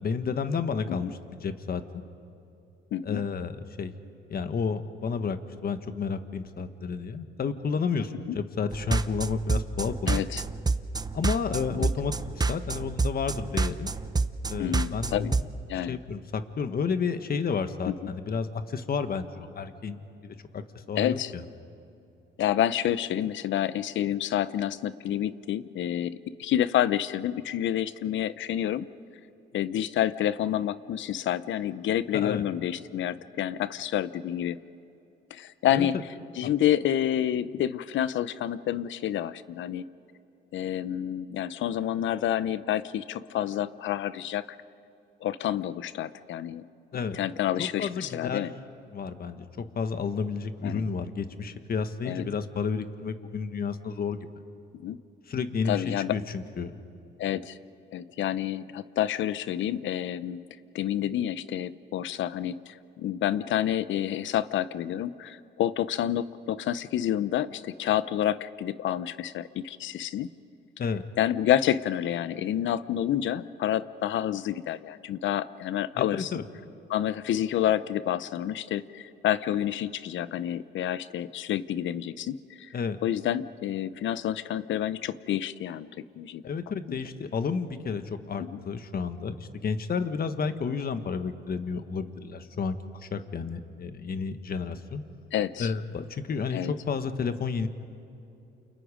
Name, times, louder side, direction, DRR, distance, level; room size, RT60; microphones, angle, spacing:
voice 1, 0.0-1.8 3.0-3.5 3.8-3.9 4.3-10.2 11.1-13.9 14.5-15.4 15.7-20.6 20.9-21.4 32.1-32.4 35.7-35.9 36.4-36.5 46.9-47.2 47.6-48.5 48.9-54.3 55.3-56.7 70.8-71.0 76.0-76.4 82.7-83.0 86.4-95.0 95.6-97.7, left 5 dB, 50° left, 9 dB, 1.5 m, -31 dB
voice 2, 2.9-3.2 8.3-8.4 10.1-10.4 11.7-11.9 14.6-15.3 15.7-16.0 17.9-18.0 21.0-21.3 22.4-28.9 29.5-34.6 35.3-36.0 36.3-39.8 40.5-44.4 45.2-46.6 47.1-48.5 50.6-50.9 52.0-52.3 54.8-55.0 55.7-56.2 57.2-57.6 57.9-60.4 60.7-70.3 71.2-76.3 76.9-82.8 83.0-85.9 86.2-86.4 86.9-87.0 88.5-88.6 95.3-95.7 96.5-96.7, left 11 dB, 75° left, 15 dB, 0.8 m, -29 dB
sound 1, 8.7-15.4, right 3 dB, 20° right, 0.7 m, -28 dB
29.0 x 28.5 x 5.1 m, 2.8 s
cardioid pair, 90°, 20 cm